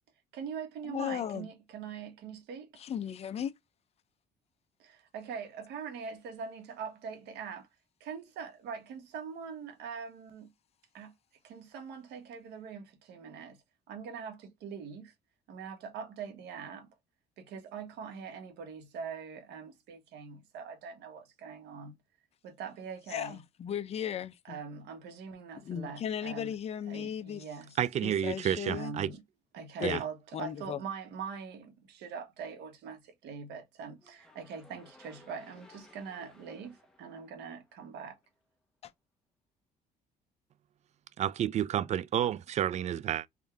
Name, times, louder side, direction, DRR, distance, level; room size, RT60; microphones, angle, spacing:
voice 1, 0.3-2.7 4.8-7.7 8.0-10.4 10.9-11.1 11.4-15.1 15.5-16.9 17.4-21.9 22.4-23.4 24.5-26.5 26.9-27.7 28.7-29.2 29.5-38.2, right 6 dB, 80° right, 1.4 m, -43 dB
voice 2, 0.8-1.5 2.8-3.5 23.1-24.6 25.6-27.4 28.0-28.9 29.8-30.0 30.3-30.8 38.8-38.9, left 9 dB, 40° left, 0.5 m, -36 dB
voice 3, 27.8-29.1 29.8-30.0 41.2-43.2, right 10 dB, 45° right, 0.4 m, -30 dB
sound 1, 34.0-38.2, left 1 dB, 5° left, 1.1 m, -59 dB
3.7 x 2.6 x 3.4 m
cardioid pair, 110°, 17 cm